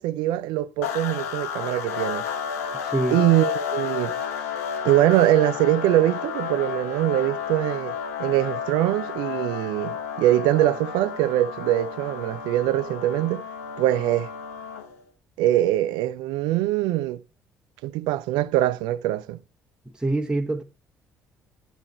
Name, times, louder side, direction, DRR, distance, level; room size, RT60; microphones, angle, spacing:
voice 1, 0.0-2.3 3.1-4.1 4.8-13.4 13.8-14.3 15.4-17.2 17.8-19.4, right 14 dB, 70° right, 0.5 m, -23 dB
sound 1, 0.8-15.0, left 7 dB, 85° left, 1.0 m, -32 dB
voice 2, 2.8-3.2 20.0-20.6, right 2 dB, 10° right, 1.1 m, -25 dB
11.0 x 6.2 x 4.3 m
hypercardioid pair, 50°, 8 cm